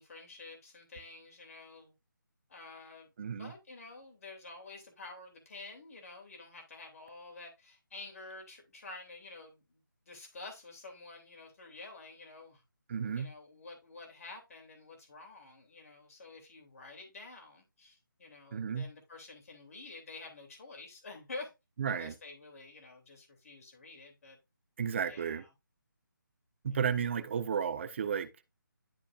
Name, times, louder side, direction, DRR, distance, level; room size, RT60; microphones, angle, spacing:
voice 1, 0.0-1.9 2.5-9.8 10.0-12.6 13.2-21.5 21.9-24.4 25.1-25.5, left 3 dB, 45° left, 3.0 m, -49 dB
voice 2, 3.2-3.5 12.9-13.3 18.5-18.9 21.8-22.1 24.8-25.4 26.6-28.3, right 7 dB, 35° right, 0.8 m, -33 dB
12.0 x 4.2 x 2.5 m
figure-of-eight pair, 160°, 11 cm